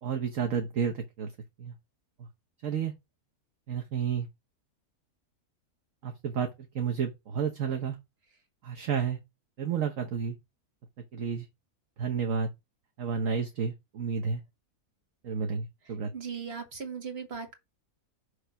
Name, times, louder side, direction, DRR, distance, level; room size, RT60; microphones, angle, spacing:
voice 1, 0.0-1.3 1.6-1.7 2.6-2.9 3.7-4.3 6.0-6.5 6.7-8.0 8.6-9.2 9.6-10.4 11.1-11.5 12.0-12.5 13.0-14.4 15.2-16.1, right 6 dB, 60° right, 1.3 m, -31 dB
voice 2, 16.1-17.6, right 6 dB, 40° right, 2.0 m, -38 dB
6.6 x 3.2 x 5.7 m
omnidirectional pair, 1.6 m